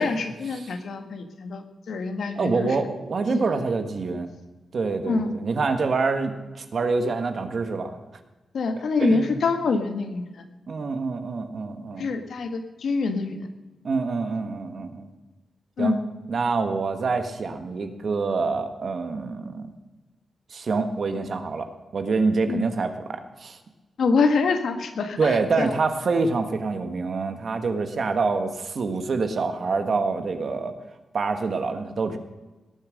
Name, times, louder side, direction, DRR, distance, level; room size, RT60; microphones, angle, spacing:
voice 1, 0.0-2.9 3.3-3.6 5.1-5.4 8.5-10.4 12.0-13.5 15.8-16.0 22.5-22.7 24.0-25.7, left 4 dB, 75° left, 7 dB, 1.6 m, -26 dB
voice 2, 2.4-4.3 4.7-8.0 9.0-9.4 10.7-12.1 13.8-15.1 15.8-15.9 16.3-19.7 20.5-23.6 25.2-30.7 31.1-32.2, right 4 dB, 55° right, 8 dB, 1.5 m, -26 dB
19.0 x 8.9 x 6.5 m, 1.2 s
wide cardioid pair, 120°, 0 cm